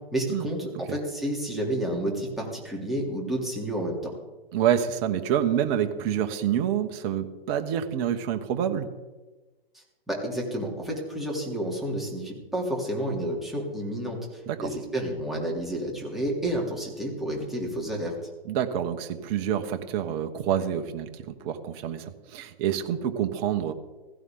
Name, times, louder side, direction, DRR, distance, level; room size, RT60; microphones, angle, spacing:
voice 1, 0.1-4.1 9.7-18.1, right 1 dB, ahead, -3 dB, 3.3 m, -30 dB
voice 2, 4.5-8.9 14.5-14.7 18.4-23.7, right 9 dB, 35° right, 7 dB, 1.3 m, -27 dB
16.0 x 16.0 x 3.9 m, 1.2 s
hypercardioid pair, 130°, 30 cm